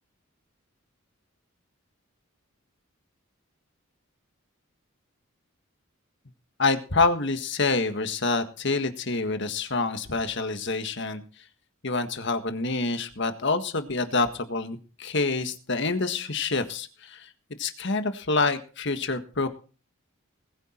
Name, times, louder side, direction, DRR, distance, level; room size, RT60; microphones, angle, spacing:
voice 1, 6.6-11.2 11.8-17.3 17.6-19.5, left 3 dB, 55° left, 8 dB, 1.7 m, -27 dB
20.0 x 9.2 x 4.5 m, 0.37 s
head